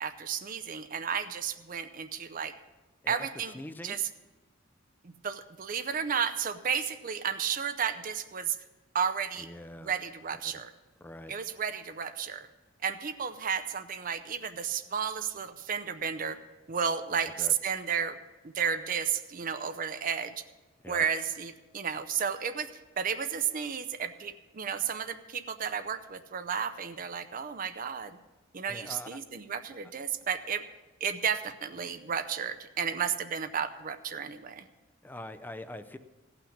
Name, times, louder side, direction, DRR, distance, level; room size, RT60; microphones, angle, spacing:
voice 1, 0.0-2.5 3.1-3.5 3.8-4.1 5.0-8.6 8.9-9.5 9.8-10.7 11.3-12.5 12.8-16.4 16.7-18.2 18.4-20.4 20.9-22.7 23.0-28.2 28.5-30.6 31.0-34.7, right 7 dB, 40° right, 10 dB, 0.5 m, -32 dB
voice 2, 3.0-4.0 9.4-9.9 11.0-11.3 17.4-17.5 20.8-21.1 28.7-29.2 35.0-36.0, left 1 dB, 10° left, 10 dB, 0.5 m, -43 dB
16.0 x 5.9 x 7.1 m, 1.2 s
head